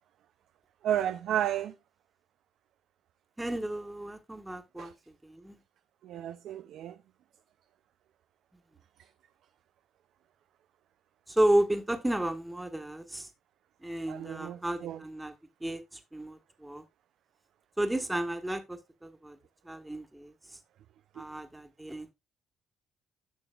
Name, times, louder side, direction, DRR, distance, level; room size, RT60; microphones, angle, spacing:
voice 1, 0.8-1.7 4.8-4.9 6.0-7.0 14.1-15.0 21.2-21.3, right 11 dB, 80° right, 0.4 m, -32 dB
voice 2, 3.4-4.9 5.2-5.6 11.3-13.3 13.8-15.3 15.6-16.8 17.8-19.4 19.6-20.6 21.1-22.1, right 1 dB, 10° right, 1.4 m, -32 dB
11.0 x 6.0 x 2.4 m
cardioid pair, 70°, 0 cm